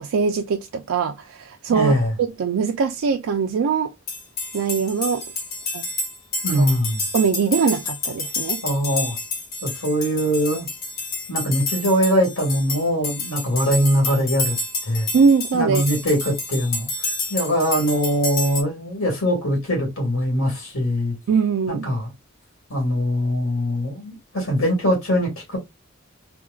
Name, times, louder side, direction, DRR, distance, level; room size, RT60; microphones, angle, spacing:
voice 1, 0.0-2.0 2.4-3.9 4.5-5.3 5.7-5.8 6.6-6.7 7.1-8.6 15.1-15.8 21.3-21.9, right 5 dB, 85° right, 0.4 m, -21 dB
voice 2, 1.7-2.1 6.4-7.1 8.6-9.2 9.6-10.7 11.3-14.6 14.8-15.1 15.5-21.2 21.7-22.1 22.7-25.6, equal, 90° left, 1.7 m, -22 dB
sound 1, 4.1-18.6, left 3 dB, 45° left, 1.1 m, -29 dB
4.4 x 2.2 x 2.3 m
head